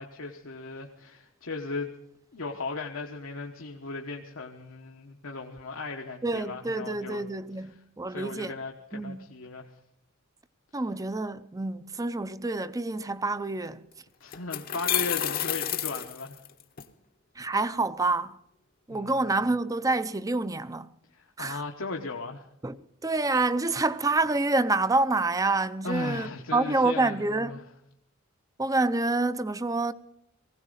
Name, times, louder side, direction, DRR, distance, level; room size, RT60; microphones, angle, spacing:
voice 1, 0.0-1.9 2.3-7.2 8.1-9.7 14.2-16.4 18.9-19.3 21.1-22.5 25.8-27.6, left 3 dB, 80° left, 1.2 m, -37 dB
voice 2, 6.2-8.5 8.9-9.3 10.7-13.8 17.4-18.4 18.9-20.9 21.4-21.6 22.6-22.8 23.0-27.5 28.6-29.9, right 2 dB, 15° right, 0.6 m, -27 dB
sound 1, 13.7-13.8 14.3-16.8, left 11 dB, 45° left, 0.9 m, -30 dB
19.5 x 16.0 x 4.0 m
head